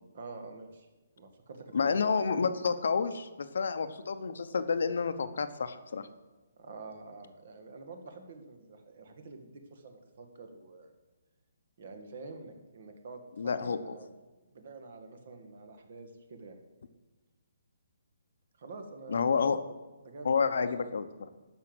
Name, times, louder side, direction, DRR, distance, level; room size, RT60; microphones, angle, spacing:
voice 1, 0.1-0.9 1.2-1.9 6.6-10.9 11.8-14.1 14.5-16.6 18.6-19.4 20.0-20.8, right 3 dB, 50° right, 6 dB, 1.7 m, -47 dB
voice 2, 1.7-6.0 13.4-13.8 19.1-19.6 20.2-21.3, left 5 dB, 65° left, 10 dB, 0.9 m, -29 dB
12.5 x 5.6 x 7.8 m, 1.2 s
hypercardioid pair, 165°, 0 cm